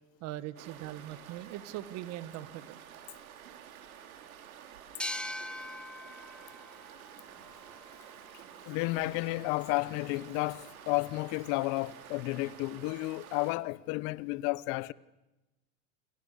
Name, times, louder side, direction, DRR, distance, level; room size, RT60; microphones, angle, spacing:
voice 1, 0.2-2.8, right 14 dB, 40° right, 1.7 m, -41 dB
sound 1, 0.6-13.5, right 9 dB, 85° right, 4.3 m, -51 dB
sound 2, 5.0-8.4, left 1 dB, ahead, 1.0 m, -42 dB
voice 2, 8.6-14.9, left 21 dB, 45° left, 0.9 m, -32 dB
29.0 x 26.0 x 6.8 m
supercardioid pair, 140°, 41 cm